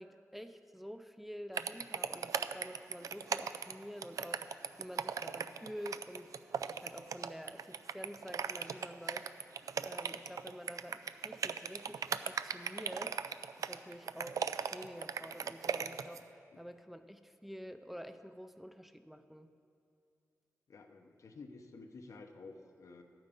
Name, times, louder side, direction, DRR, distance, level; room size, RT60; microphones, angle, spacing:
voice 1, 0.0-9.3 9.8-19.5, equal, 5° right, 8 dB, 0.5 m, -48 dB
sound 1, 1.5-16.2, right 7 dB, 85° right, 0.4 m, -38 dB
voice 2, 20.7-23.0, left 3 dB, 70° left, 5 dB, 0.9 m, -52 dB
12.0 x 9.0 x 5.3 m, 2.5 s
wide cardioid pair, 80°, 6 cm